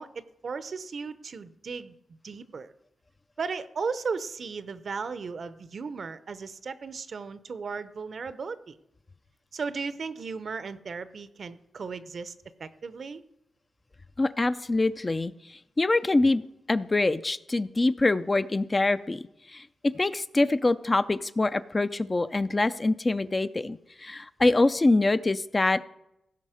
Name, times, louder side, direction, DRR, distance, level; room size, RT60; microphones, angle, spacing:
voice 1, 0.0-1.9 2.2-2.7 3.4-8.8 9.5-12.3 12.6-13.2, right 5 dB, 55° right, 14 dB, 0.7 m, -36 dB
voice 2, 14.2-16.4 16.7-19.2 19.5-25.8, left 2 dB, 25° left, 12 dB, 0.4 m, -25 dB
16.0 x 5.4 x 5.0 m, 0.84 s
cardioid pair, 80°, 0 cm